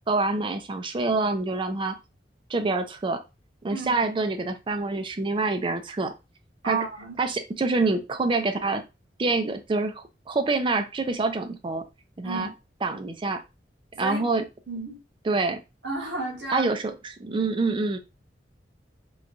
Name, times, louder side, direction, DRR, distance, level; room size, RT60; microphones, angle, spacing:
voice 1, 0.1-2.0 2.5-3.2 3.6-6.1 6.6-6.8 7.2-8.8 9.2-11.9 12.2-12.5 12.8-13.4 14.0-14.5 15.2-15.6 16.5-18.0, right 3 dB, 30° right, 0.4 m, -26 dB
voice 2, 3.7-4.1 6.6-7.2 12.2-12.5 13.9-14.2 14.7-15.0 15.8-16.7, right 3 dB, 75° right, 1.2 m, -32 dB
3.0 x 2.3 x 2.5 m
head